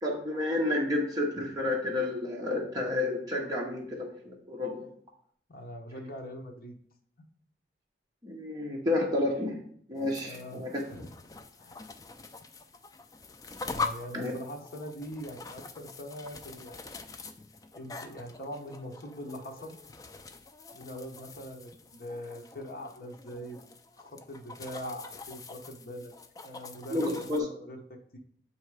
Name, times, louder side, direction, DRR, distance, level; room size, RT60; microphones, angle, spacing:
voice 1, 0.0-4.7 8.2-9.6 9.9-10.8 14.1-14.3 26.9-27.5, left 2 dB, 20° right, -3 dB, 0.8 m, -30 dB
voice 2, 5.5-6.7 10.2-11.1 11.6-11.9 13.7-16.8 17.8-19.8 20.7-23.6 24.0-26.1 26.4-28.2, equal, 50° left, 0 dB, 0.8 m, -42 dB
sound 1, 10.0-27.4, left 4 dB, 20° left, 0.3 m, -43 dB
8.1 x 2.8 x 4.7 m, 0.62 s
head